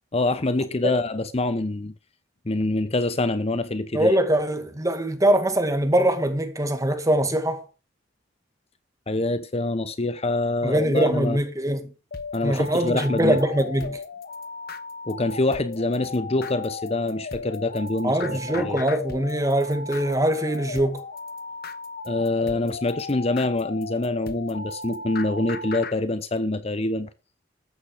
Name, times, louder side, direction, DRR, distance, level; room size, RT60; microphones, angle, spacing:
voice 1, 0.1-1.9 2.5-4.1 9.1-11.4 12.3-13.4 15.1-18.8 22.1-27.1, left 2 dB, 30° left, 0.8 m, -25 dB
voice 2, 3.9-7.6 10.6-11.9 12.4-14.0 18.0-21.0, right 1 dB, 15° right, 2.1 m, -23 dB
sound 1, 12.1-26.0, left 3 dB, 50° left, 1.2 m, -36 dB
13.5 x 8.8 x 5.0 m
head